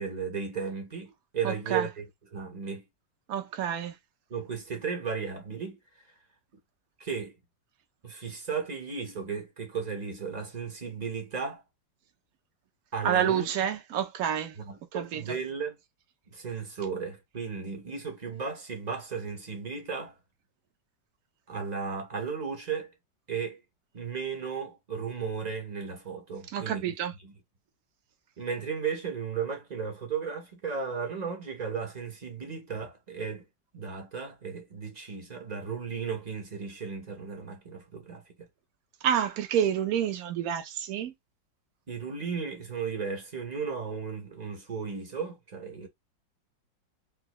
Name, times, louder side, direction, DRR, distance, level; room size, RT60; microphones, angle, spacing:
voice 1, 0.0-2.0 2.3-2.8 4.3-5.8 7.0-7.3 8.0-11.6 12.9-13.5 14.6-15.8 16.3-20.2 21.5-22.9 23.3-23.6 23.9-26.9 27.2-27.3 28.4-33.4 33.7-38.5 41.9-45.9, right 6 dB, 30° right, 0.8 m, -35 dB
voice 2, 1.4-1.9 3.3-4.0 13.0-14.6 14.9-15.4 26.5-27.1 39.0-41.1, right 9 dB, 60° right, 1.1 m, -28 dB
3.7 x 2.7 x 3.0 m
omnidirectional pair, 2.0 m